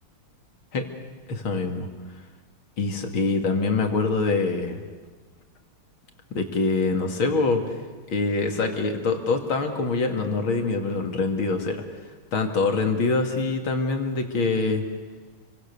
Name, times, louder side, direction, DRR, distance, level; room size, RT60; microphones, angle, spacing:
voice 1, 1.3-1.9 2.8-4.8 6.3-7.6 8.1-11.8 12.3-14.8, left 3 dB, 70° left, 4 dB, 3.3 m, -24 dB
29.0 x 24.5 x 6.9 m, 1.4 s
omnidirectional pair, 2.3 m